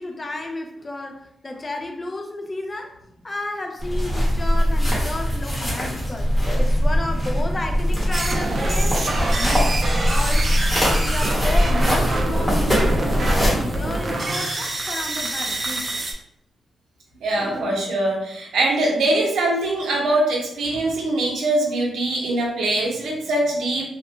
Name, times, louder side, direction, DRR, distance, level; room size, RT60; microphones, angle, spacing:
voice 1, 0.0-3.0 3.2-10.5 11.0-16.0 17.3-17.8, left 2 dB, 25° left, 3 dB, 0.4 m, -32 dB
sound 1, 3.8-13.5, equal, 10° left, 0.9 m, -21 dB
sound 2, 8.1-16.1, right 2 dB, 40° right, 0.4 m, -26 dB
voice 2, 17.2-23.9, right 2 dB, 85° right, -1 dB, 0.6 m, -22 dB
2.7 x 2.1 x 2.8 m, 0.75 s
wide cardioid pair, 120°, 0 cm